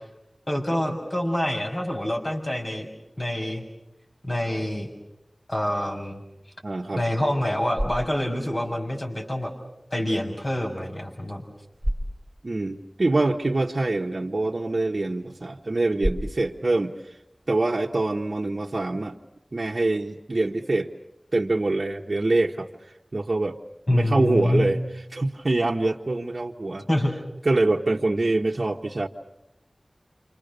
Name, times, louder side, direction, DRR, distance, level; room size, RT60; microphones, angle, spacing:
voice 1, 0.5-2.8 3.2-3.6 4.2-4.9 5.5-6.2 7.0-9.5 9.9-11.4 23.9-24.7 26.9-27.2, left 1 dB, 40° left, -1 dB, 6.5 m, -26 dB
voice 2, 6.6-7.0 12.4-17.0 17.5-19.2 19.5-20.9 21.3-22.7 23.1-23.6 23.9-24.8 25.1-26.8 27.4-29.1, right 2 dB, 60° right, -1 dB, 1.2 m, -24 dB
sound 1, 7.4-18.4, equal, 5° left, 4.8 m, -37 dB
29.0 x 26.5 x 6.8 m, 0.87 s
wide cardioid pair, 60°, 0 cm